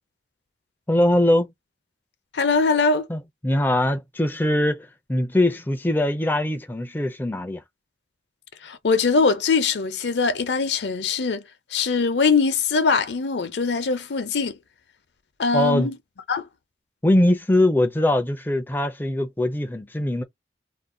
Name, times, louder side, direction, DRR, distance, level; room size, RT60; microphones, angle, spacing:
voice 1, 0.9-1.5 3.1-7.6 15.5-15.9 17.0-20.2, left 1 dB, 10° left, 0.4 m, -22 dB
voice 2, 2.3-3.1 8.6-11.4 11.7-14.5 15.4-15.9 16.3-16.4, left 4 dB, 75° left, 0.6 m, -22 dB
2.5 x 2.1 x 3.6 m
head